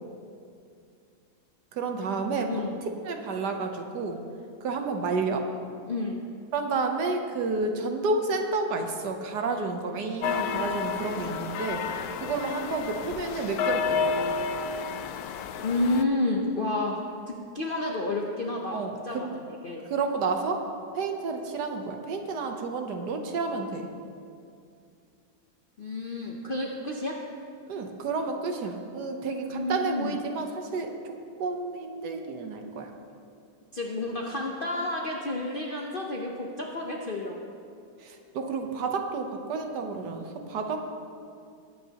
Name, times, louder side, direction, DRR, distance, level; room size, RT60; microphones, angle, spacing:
voice 1, 1.7-2.6 3.0-4.2 4.6-5.5 6.5-11.8 12.2-14.4 18.7-19.4 19.9-23.9 27.7-32.9 38.0-40.8, right 3 dB, 70° right, 4 dB, 1.4 m, -30 dB
voice 2, 2.5-2.8 5.8-6.2 15.6-17.0 17.3-18.8 19.0-19.3 19.6-19.8 25.8-27.2 29.5-30.2 33.7-37.4, left 2 dB, 50° left, -1 dB, 0.6 m, -30 dB
sound 1, 10.2-16.0, left 5 dB, 70° left, 1.0 m, -30 dB
20.5 x 8.7 x 2.9 m, 2.4 s
omnidirectional pair, 1.9 m